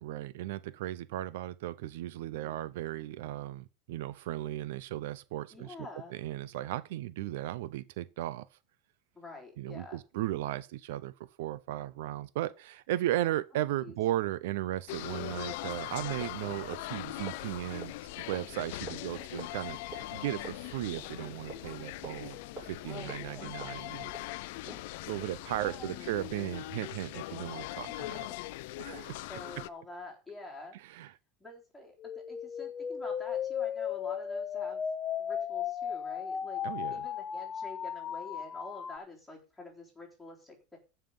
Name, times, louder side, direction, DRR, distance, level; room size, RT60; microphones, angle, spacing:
voice 1, 0.0-8.5 9.6-17.9 18.3-22.4 22.6-24.1 25.1-28.3 28.8-29.2 30.7-31.1 36.6-37.0, right 14 dB, 75° right, 0.6 m, -36 dB
voice 2, 2.3-2.7 5.5-6.1 9.1-10.0 13.5-13.9 22.9-23.6 24.5-24.9 25.4-26.1 27.9-28.0 28.9-29.0 29.3-30.8 31.4-34.8 35.2-36.6 36.9-40.8, left 2 dB, 5° left, 3.6 m, -47 dB
sound 1, 14.9-29.7, left 19 dB, 65° left, 0.5 m, -41 dB
sound 2, 16.0-26.6, right 2 dB, 25° right, 7.0 m, -51 dB
sound 3, 32.0-39.0, left 8 dB, 20° left, 0.6 m, -35 dB
14.5 x 5.6 x 5.5 m
supercardioid pair, 165°, 0 cm